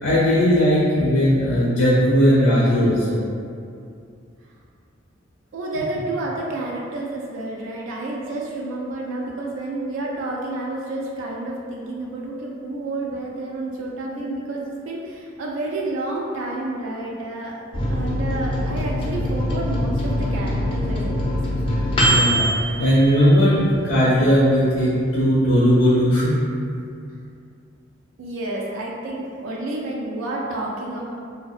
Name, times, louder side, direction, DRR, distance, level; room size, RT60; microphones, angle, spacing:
voice 1, 0.0-3.2 22.0-23.6 23.8-26.3, equal, 85° left, -9 dB, 0.4 m, -18 dB
voice 2, 5.5-17.6 17.9-21.4 28.2-31.1, right 2 dB, 75° right, -3 dB, 0.3 m, -30 dB
Microwave oven, 17.7-23.8 24.2-24.3 24.6-25.2, equal, 25° left, 0.4 m, -23 dB
2.6 x 2.0 x 2.3 m, 2.4 s
head